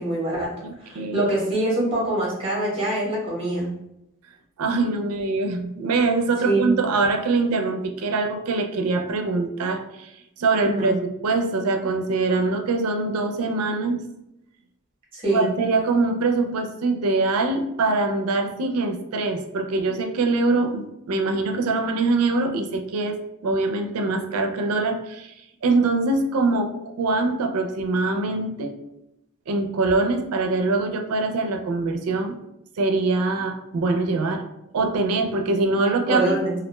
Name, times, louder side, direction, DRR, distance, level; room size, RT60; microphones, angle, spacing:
voice 1, 0.0-0.5 0.8-3.7 6.4-6.7 10.6-10.9 15.1-15.6 36.0-36.5, right 1 dB, 25° right, -4 dB, 0.8 m, -24 dB
voice 2, 0.6-1.3 4.6-10.1 10.4-14.0 15.3-23.2 23.4-25.3 25.6-28.7 29.5-32.4 32.8-34.4 34.7-36.3, right 3 dB, 85° right, 5 dB, 0.4 m, -23 dB
2.4 x 2.1 x 3.0 m, 0.85 s
head